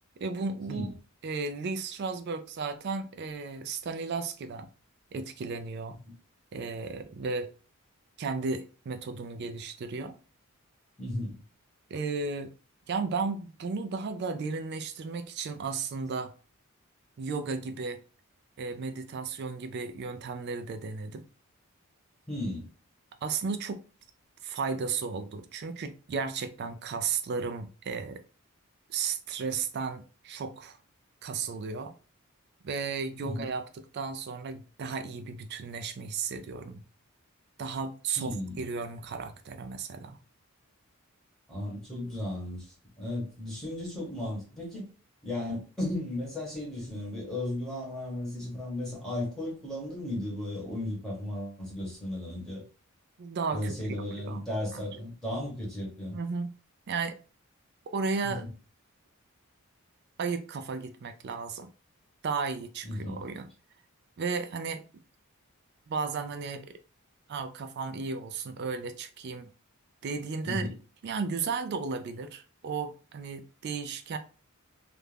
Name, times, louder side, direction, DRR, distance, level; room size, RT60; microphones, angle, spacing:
voice 1, 0.2-0.9 1.2-4.7 5.1-6.0 6.5-7.5 8.2-10.2 11.9-12.5 12.9-16.3 17.2-18.0 18.6-21.2 23.2-23.8 24.4-28.2 28.9-30.8 31.2-31.9 32.6-36.8 37.6-40.2 53.2-53.8 54.2-54.4 54.7-54.8 56.1-56.5 56.9-57.2 57.9-58.5 60.2-61.7 62.2-63.5 64.2-64.8 65.9-66.7 67.3-69.5 70.0-70.7 71.0-74.2, right 4 dB, 50° right, 0.3 m, -34 dB
voice 2, 11.0-11.4 22.3-22.7 33.2-33.5 38.2-38.6 41.5-44.9 45.2-52.6 53.5-56.2 58.2-58.4 62.8-63.2 70.4-70.7, left 1 dB, 5° left, 0.9 m, -35 dB
2.5 x 2.1 x 3.2 m
head